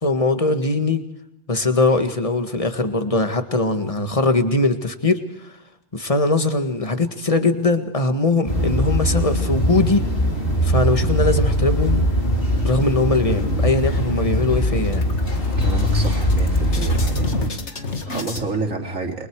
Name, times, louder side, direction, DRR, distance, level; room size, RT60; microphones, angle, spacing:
voice 1, 0.0-1.0 1.5-5.6 5.9-10.1 10.6-12.0 12.6-15.0, left 3 dB, 25° left, 8 dB, 1.8 m, -21 dB
sound 1, 8.5-17.5, equal, 45° left, 3.4 m, -21 dB
sound 2, 13.1-13.9 14.2-14.4 14.7-18.4, left 3 dB, 60° left, 2.2 m, -33 dB
voice 2, 15.6-17.3 17.6-19.3, right 3 dB, 85° right, 1 dB, 3.7 m, -29 dB
29.0 x 23.0 x 4.8 m, 0.83 s
omnidirectional pair, 1.3 m